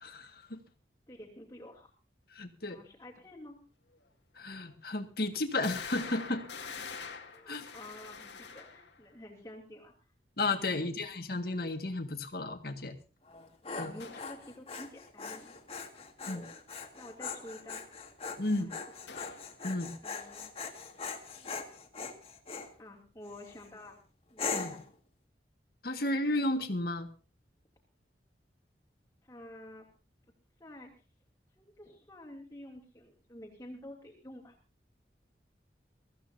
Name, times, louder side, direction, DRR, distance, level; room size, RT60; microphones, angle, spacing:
voice 1, 0.0-0.6 2.4-2.8 4.4-6.5 7.5-7.6 10.4-12.9 13.8-13.9 16.3-16.4 18.4-18.7 19.6-19.9 24.5-24.7 25.8-27.1, left 2 dB, 60° left, 6 dB, 1.8 m, -33 dB
voice 2, 1.1-1.9 2.7-3.6 7.3-9.9 13.7-15.5 16.2-16.6 17.0-17.8 18.6-18.8 20.0-20.5 22.8-24.0 24.3-24.8 29.2-29.9 30.6-31.0 31.6-34.6, left 1 dB, 20° left, -3 dB, 2.8 m, -50 dB
sound 1, 4.0-4.1 4.7-4.8 5.6-9.0 14.0-14.4 19.1-19.6, left 5 dB, 90° left, 2.1 m, -45 dB
Dog, 13.3-22.7 23.3-23.7 24.4-24.9, left 5 dB, 35° left, 2.0 m, -41 dB
23.5 x 15.0 x 2.8 m, 0.34 s
head